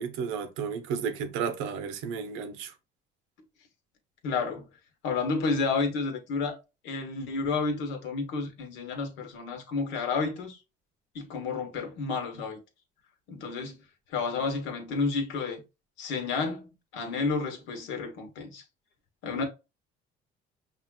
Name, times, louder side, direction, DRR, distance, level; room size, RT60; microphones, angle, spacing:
voice 1, 0.0-2.7, right 6 dB, 90° right, 0.7 m, -33 dB
voice 2, 4.2-4.7 5.0-6.6 6.8-10.6 11.1-12.6 13.3-13.8 14.1-15.6 16.0-18.6 19.2-19.4, left 4 dB, 80° left, 1.1 m, -31 dB
5.6 x 2.5 x 2.2 m
cardioid pair, 110°, 19 cm